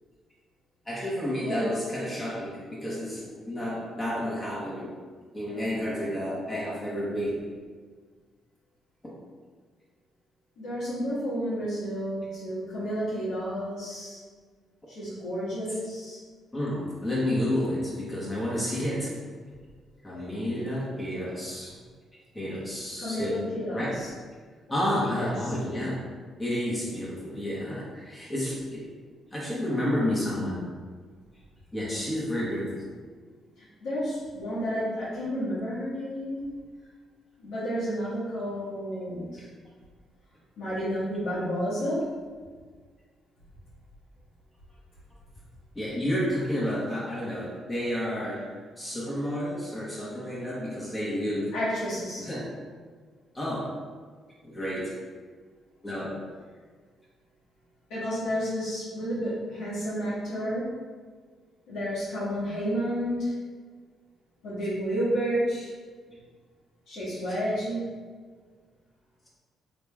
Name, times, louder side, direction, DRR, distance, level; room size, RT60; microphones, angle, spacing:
voice 1, 0.9-4.9 5.3-7.4 16.5-19.1 20.0-21.7 22.3-24.0 24.7-26.0 26.4-28.9 29.3-30.6 31.7-32.8 45.7-48.5 48.8-51.5 52.2-52.5 53.3-53.7 54.4-54.9 55.8-56.1, equal, 20° left, -7 dB, 1.4 m, -30 dB
voice 2, 1.4-1.7 10.6-14.2 14.9-16.2 23.0-24.1 25.1-25.3 33.6-36.5 37.4-39.4 40.6-42.1 51.5-52.3 57.9-60.7 61.7-63.3 64.4-65.7 66.9-67.9, equal, 75° left, -11 dB, 1.4 m, -31 dB
3.2 x 2.9 x 3.5 m, 1.6 s
hypercardioid pair, 50°, 0 cm